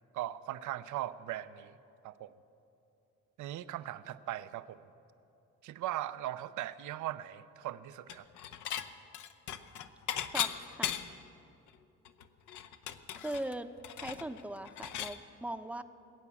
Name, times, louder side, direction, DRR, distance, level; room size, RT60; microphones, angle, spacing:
voice 1, 0.1-1.7 2.0-2.3 3.4-4.8 5.6-8.3, right 13 dB, 80° right, 14 dB, 0.6 m, -39 dB
Dishes pots and pans / Chink clink, 8.1-8.9 9.1-11.3 11.7-11.8 12.1-15.2, left 10 dB, 75° left, 0.8 m, -37 dB
voice 2, 10.3-10.9 13.1-13.7 14.0-15.8, right 1 dB, 5° right, 10 dB, 0.7 m, -40 dB
20.5 x 8.7 x 7.1 m, 2.7 s
cardioid pair, 90°, 30 cm